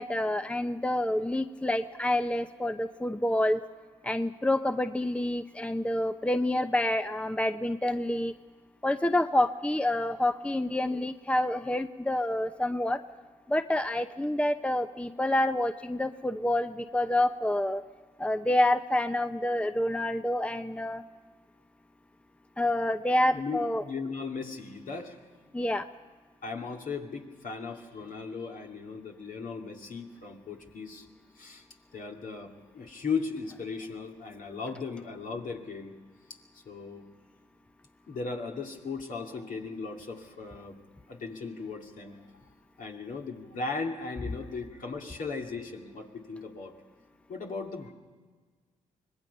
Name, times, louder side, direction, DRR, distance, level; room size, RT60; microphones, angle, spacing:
voice 1, 0.0-3.6 4.0-8.3 8.8-13.0 13.5-17.8 18.2-21.0 22.6-23.8 25.5-25.9, left 1 dB, 5° left, 10 dB, 0.8 m, -28 dB
voice 2, 23.3-25.2 26.4-31.1 31.4-31.6 31.9-35.9 36.6-37.0 38.1-40.8 41.1-42.2 42.8-46.7 47.3-47.9, left 4 dB, 60° left, 1 dB, 2.5 m, -37 dB
25.0 x 19.5 x 5.5 m, 1.5 s
hypercardioid pair, 40°, 16 cm